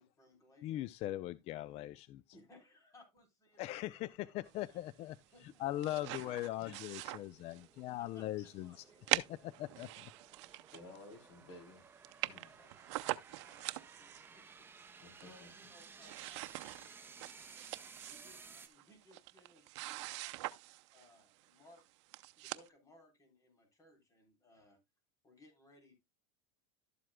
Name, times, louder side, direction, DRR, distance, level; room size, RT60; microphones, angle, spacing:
voice 1, 0.0-0.9 2.3-3.6 3.9-4.8 5.3-5.4 7.9-9.0 10.4-10.8 12.3-12.7 13.4-14.8 15.2-20.3 20.9-21.9 22.4-24.8 25.2-25.9, left 1 dB, 20° left, 3.9 m, -64 dB
voice 2, 0.6-2.2 3.6-5.2 5.6-8.8 9.3-10.1, left 14 dB, 45° left, 0.4 m, -40 dB
sound 1, 4.2-18.7, right 5 dB, 15° right, 1.0 m, -58 dB
sound 2, 5.5-7.8 8.2-8.3 9.1-11.1 11.5-11.6 11.8-11.9 12.0-14.3 14.8-15.5 15.7-21.1 21.8-21.9 22.1-22.7, right 19 dB, 70° right, 0.6 m, -42 dB
voice 3, 6.2-6.8 8.4-8.5 10.7-11.8 12.2-12.5 15.0-15.5, left 2 dB, 65° left, 3.5 m, -55 dB
12.5 x 7.6 x 2.2 m
supercardioid pair, 125°, 16 cm